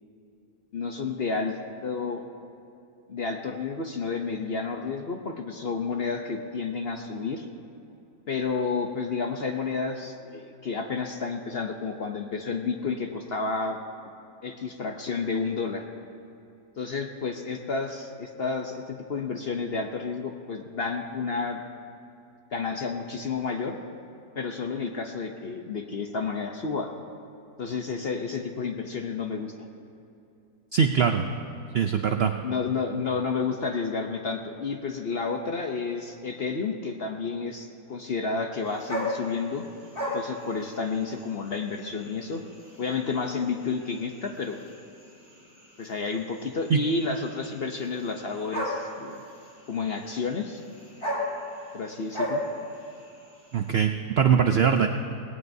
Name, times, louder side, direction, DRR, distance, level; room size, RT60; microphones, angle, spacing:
voice 1, 0.7-1.6 1.8-2.2 3.1-7.5 8.3-13.8 14.4-15.8 16.8-21.6 22.5-23.8 24.3-26.9 27.6-29.5 32.4-39.6 40.1-42.4 42.8-44.6 45.8-49.2 49.7-50.6 51.7-52.4, left 4 dB, 50° left, 3 dB, 0.7 m, -31 dB
voice 2, 30.7-31.3 31.7-32.3 46.7-46.8 53.5-54.9, right 7 dB, 75° right, 6 dB, 0.5 m, -22 dB
sound 1, 38.5-53.7, equal, 30° left, 3.3 m, -37 dB
19.0 x 17.5 x 2.7 m, 2.7 s
omnidirectional pair, 1.8 m